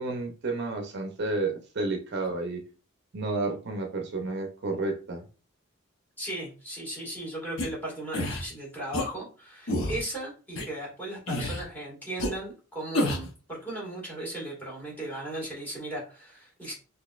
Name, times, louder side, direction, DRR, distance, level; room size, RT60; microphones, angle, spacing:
voice 1, 0.0-2.6 3.1-5.2, right 3 dB, 55° right, 3 dB, 0.6 m, -31 dB
voice 2, 6.2-16.7, right 1 dB, 10° left, -5 dB, 1.9 m, -37 dB
sound 1, 7.6-7.7 8.1-8.4 8.9-9.1 9.7-10.0 10.6-10.7 11.3-11.6 12.2-12.3 12.9-13.3, left 1 dB, 75° left, 0.9 m, -28 dB
4.0 x 2.9 x 2.4 m, 0.36 s
head